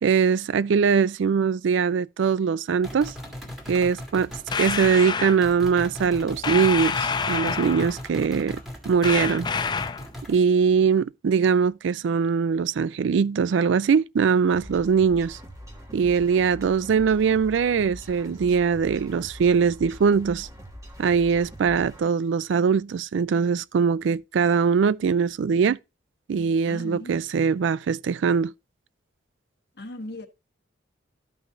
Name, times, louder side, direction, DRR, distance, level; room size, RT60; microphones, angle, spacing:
voice 1, 0.0-3.1 3.7-4.3 4.6-8.6 8.9-9.5 10.3-15.4 15.9-20.5 21.0-25.8 26.3-28.5, right 6 dB, 70° right, 0.3 m, -22 dB
sound 1, 2.8-5.0 5.4-10.4, equal, ahead, 2.0 m, -38 dB
sound 2, 4.5-5.4 6.4-8.0 9.0-10.1, left 5 dB, 25° left, 0.4 m, -27 dB
sound 3, 14.5-22.0, equal, 15° right, 1.4 m, -43 dB
voice 2, 26.7-27.2 29.8-30.3, left 1 dB, 55° left, 1.3 m, -37 dB
13.0 x 5.7 x 2.5 m
head